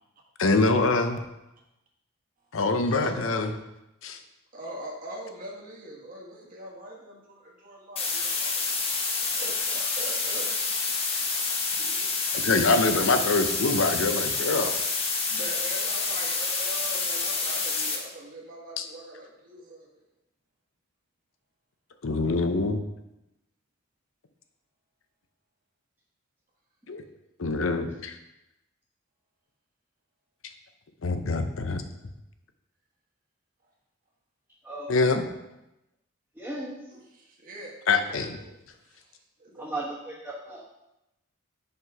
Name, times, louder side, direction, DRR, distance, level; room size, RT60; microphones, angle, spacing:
voice 1, 0.4-1.2 2.5-3.5 4.0-4.2 12.3-14.8 18.8-18.9 22.0-22.8 26.9-27.0 27.4-28.1 31.0-31.8 34.9-35.3 37.9-38.4, left 3 dB, 70° left, 8 dB, 0.7 m, -24 dB
voice 2, 2.9-3.6 4.5-10.5 10.9-12.1 15.3-20.0 36.9-37.8 38.1-38.6 38.8-39.8, right 1 dB, 40° right, -2 dB, 1.4 m, -43 dB
sound 1, 8.0-18.0, left 4 dB, 30° left, 1.1 m, -28 dB
voice 3, 34.6-35.1 36.3-36.8 39.6-40.6, right 1 dB, 10° right, -8 dB, 1.2 m, -36 dB
5.7 x 5.5 x 4.7 m, 0.92 s
head